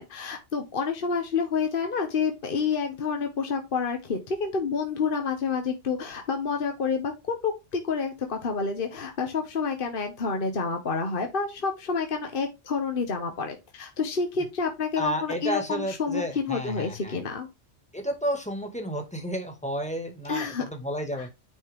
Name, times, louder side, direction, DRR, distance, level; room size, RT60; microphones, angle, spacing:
voice 1, 0.0-17.5 20.3-20.6 21.1-21.2, left 5 dB, 45° left, 4 dB, 1.4 m, -29 dB
voice 2, 15.0-17.2 17.9-21.3, equal, 5° left, 4 dB, 1.9 m, -31 dB
9.7 x 4.3 x 3.6 m, 0.24 s
omnidirectional pair, 1.3 m